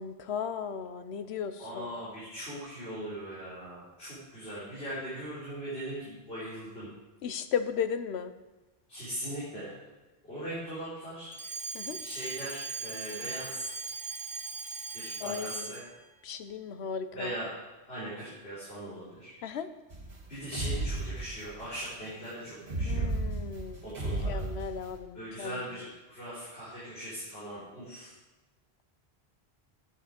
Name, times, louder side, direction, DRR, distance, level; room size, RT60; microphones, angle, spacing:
voice 1, 0.0-2.0 7.2-8.3 11.7-12.0 15.2-15.7 16.2-17.3 19.4-19.7 22.8-25.6, left 7 dB, 90° left, 10 dB, 1.0 m, -36 dB
voice 2, 1.6-6.9 8.9-9.7 10.2-11.3 12.0-13.7 14.9-15.8 17.1-17.5 17.9-19.3 20.3-23.1 23.9-24.4 25.1-28.1, right 1 dB, 75° left, -11 dB, 4.1 m, -40 dB
Alarm, 11.3-16.0, right 4 dB, 10° right, 0.4 m, -39 dB
sound 1, 19.9-21.7 22.6-24.9, right 2 dB, 60° right, 1.8 m, -33 dB
9.5 x 8.8 x 5.1 m, 1.1 s
omnidirectional pair, 1.1 m